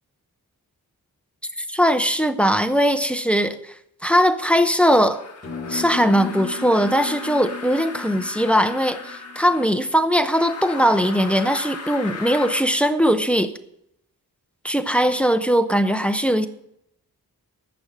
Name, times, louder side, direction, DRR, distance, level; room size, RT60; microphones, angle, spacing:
voice 1, 1.7-3.7 4.0-5.2 5.7-13.5 14.6-16.5, equal, 5° left, 9 dB, 0.6 m, -20 dB
sound 1, 5.1-9.7 10.3-12.7, left 3 dB, 40° left, 1.5 m, -37 dB
sound 2, 5.4-10.0, left 6 dB, 20° left, 6.3 m, -35 dB
13.5 x 6.3 x 8.6 m, 0.78 s
wide cardioid pair, 175°, 37 cm